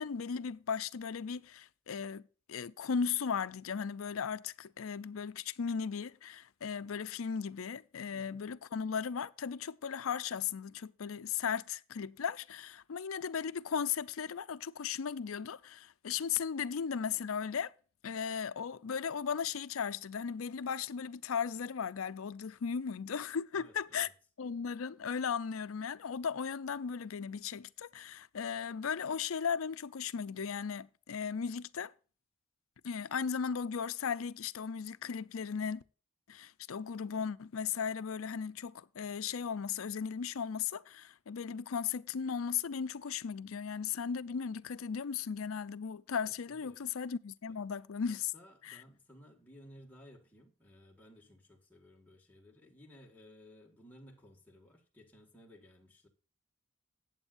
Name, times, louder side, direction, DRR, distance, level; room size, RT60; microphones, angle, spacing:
voice 1, 0.0-2.2 2.5-17.7 18.0-24.1 24.4-31.9 32.8-35.8 36.3-48.3 48.6-48.8, left 6 dB, 85° left, 0.5 m, -36 dB
voice 2, 8.1-8.4 23.5-24.1 46.3-46.8 47.5-47.6 48.0-56.1, equal, 10° left, 1.8 m, -58 dB
14.0 x 8.9 x 2.5 m
head